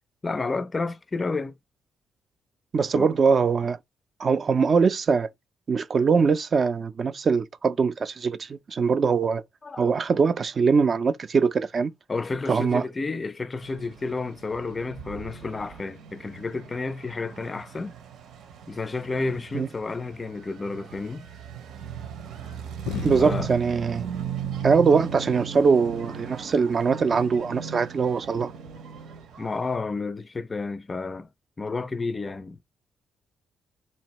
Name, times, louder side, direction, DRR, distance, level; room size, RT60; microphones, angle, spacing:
voice 1, 0.2-1.5 2.9-3.1 9.6-9.9 12.1-17.9 18.7-21.2 23.2-23.5 29.4-31.3 31.6-32.6, left 3 dB, 30° left, 0.4 m, -31 dB
voice 2, 2.7-3.8 4.2-5.3 5.7-9.4 9.8-11.9 12.5-12.8 19.5-19.7 23.0-24.1 24.6-28.5, right 5 dB, 45° right, 0.4 m, -22 dB
sound 1, 13.6-29.7, right 8 dB, 80° right, 0.9 m, -38 dB
sound 2, 22.9-25.1 25.5-26.4 27.3-27.6 28.6-28.8, left 8 dB, 85° left, 0.5 m, -38 dB
4.2 x 2.6 x 2.9 m
cardioid pair, 90°, 0 cm